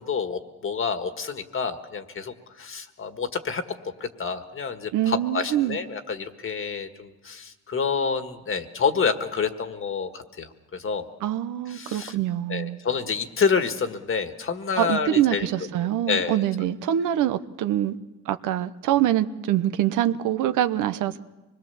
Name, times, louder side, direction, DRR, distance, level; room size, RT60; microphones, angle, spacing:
voice 1, 0.0-3.6 4.0-11.1 11.7-12.1 12.5-15.5 16.1-16.4, left 5 dB, 45° left, 1.7 m, -28 dB
voice 2, 4.9-5.8 11.2-12.8 14.8-18.0 18.3-21.2, right 12 dB, 85° right, 0.9 m, -24 dB
25.0 x 21.0 x 7.0 m
cardioid pair, 90°, 30 cm